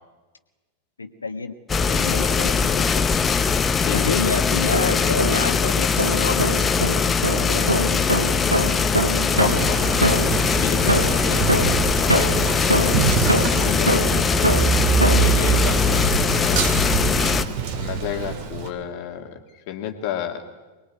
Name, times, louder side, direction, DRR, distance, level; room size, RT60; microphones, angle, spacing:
voice 1, 1.0-3.0 3.9-6.7 7.3-8.0, left 4 dB, 75° left, 9 dB, 1.6 m, -29 dB
sound 1, 1.7-17.4, left 5 dB, 20° left, 1.1 m, -21 dB
voice 2, 3.5-4.1 9.3-13.1 13.6-14.7 15.0-16.2 16.5-16.8 17.5-20.4, left 9 dB, 45° left, 4 dB, 2.1 m, -32 dB
sound 2, 4.5-5.6 6.0-10.5 10.9-15.4, right 1 dB, 85° right, 1.4 m, -24 dB
Male speech man speaking, 9.3-18.7, right 5 dB, 45° right, 2.7 m, -24 dB
23.5 x 21.0 x 9.5 m, 1.2 s
figure-of-eight pair, 90°, 0 cm